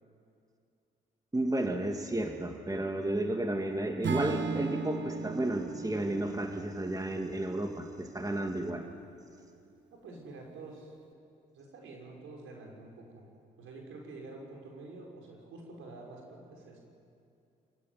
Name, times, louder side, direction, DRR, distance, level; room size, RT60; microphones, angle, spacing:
voice 1, 1.3-8.8, right 1 dB, 15° right, 4 dB, 2.5 m, -32 dB
Acoustic guitar / Strum, 4.0-8.3, right 5 dB, 55° right, 1.6 m, -37 dB
voice 2, 8.5-8.9 9.9-10.9 11.5-13.3 13.6-16.8, right 3 dB, 75° right, 0 dB, 5.6 m, -48 dB
26.0 x 16.0 x 9.6 m, 2.5 s
hypercardioid pair, 45°, 21 cm